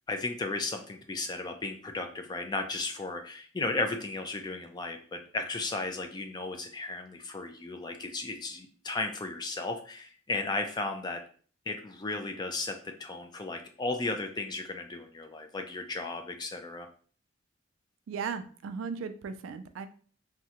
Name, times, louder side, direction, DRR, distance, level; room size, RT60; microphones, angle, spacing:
voice 1, 0.1-11.2 11.7-16.9, left 3 dB, 20° left, 5 dB, 0.3 m, -35 dB
voice 2, 18.1-19.9, right 6 dB, 75° right, 10 dB, 0.3 m, -36 dB
3.5 x 2.1 x 2.8 m, 0.43 s
head